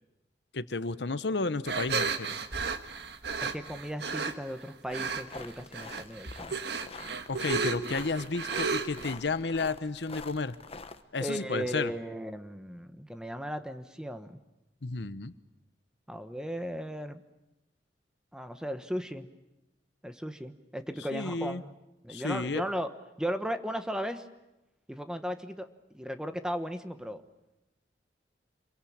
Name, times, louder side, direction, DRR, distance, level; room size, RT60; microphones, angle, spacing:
voice 1, 0.5-2.3 7.3-10.6 11.1-11.9 14.8-15.3 21.0-21.6 22.1-22.6, left 3 dB, 75° left, 14 dB, 1.0 m, -32 dB
sound 1, 1.7-4.3 4.9-5.4 5.7-9.1, right 5 dB, 65° right, 1.6 m, -33 dB
voice 2, 3.4-6.6 11.2-14.4 16.1-17.2 18.3-19.3 20.0-21.7 22.0-22.9 23.2-24.3 24.9-27.2, equal, 5° right, 9 dB, 1.2 m, -36 dB
sound 2, 4.9-11.0, left 4 dB, 35° left, 1.2 m, -47 dB
27.0 x 23.0 x 8.7 m, 0.95 s
head